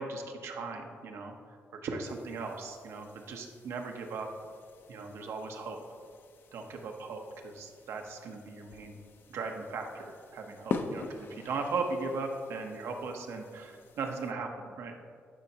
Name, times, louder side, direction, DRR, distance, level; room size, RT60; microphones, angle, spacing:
voice 1, 0.0-4.3 4.9-5.8 6.5-9.0 9.3-15.0, right 4 dB, 85° right, 3 dB, 0.8 m, -38 dB
sound 1, 2.0-14.3, left 4 dB, 55° left, 0.5 m, -45 dB
11.0 x 5.3 x 2.8 m, 2.1 s
cardioid pair, 130°, 4 cm